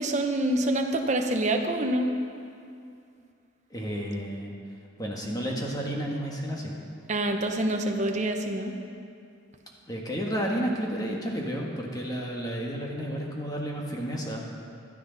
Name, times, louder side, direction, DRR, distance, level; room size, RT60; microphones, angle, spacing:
voice 1, 0.0-2.1 7.1-8.7, right 1 dB, 35° right, 4 dB, 0.9 m, -26 dB
voice 2, 3.7-4.6 5.0-6.7 9.9-14.5, equal, 20° left, -1 dB, 1.5 m, -31 dB
16.0 x 11.5 x 4.1 m, 2.4 s
head